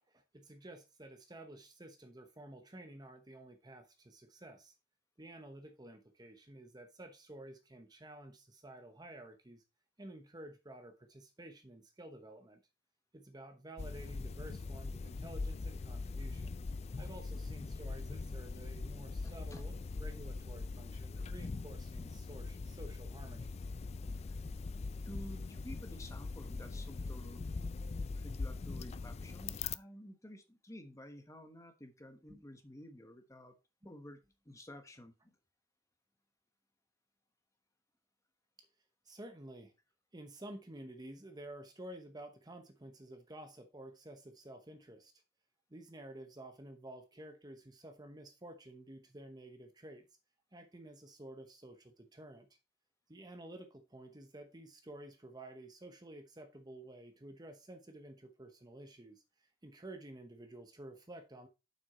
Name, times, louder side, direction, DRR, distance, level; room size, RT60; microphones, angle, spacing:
voice 1, 0.0-4.7 5.2-9.6 10.0-12.6 13.1-16.6 17.0-23.5 32.3-32.4 33.8-33.9 38.6-38.7 39.0-39.7 40.1-45.1 45.7-50.1 50.5-52.5 53.1-61.5, right 1 dB, 20° right, 0.9 m, -52 dB
sound 1, 13.8-29.8, left 3 dB, 30° left, 0.3 m, -41 dB
voice 2, 19.2-19.7 24.2-24.3 25.0-27.5 28.2-33.5 33.8-35.4, equal, 15° left, 1.1 m, -52 dB
7.5 x 6.1 x 4.2 m
head